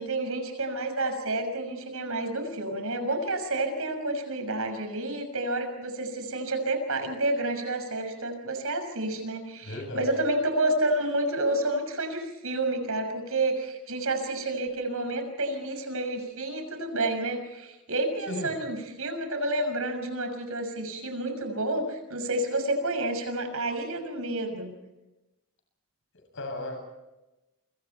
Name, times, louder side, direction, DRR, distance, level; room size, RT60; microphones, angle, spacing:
voice 1, 0.0-24.7, right 2 dB, 70° right, 7 dB, 6.1 m, -30 dB
voice 2, 9.6-10.1 18.3-18.5 26.3-26.8, left 1 dB, 60° left, 4 dB, 8.0 m, -34 dB
29.0 x 25.5 x 4.5 m, 1.0 s
head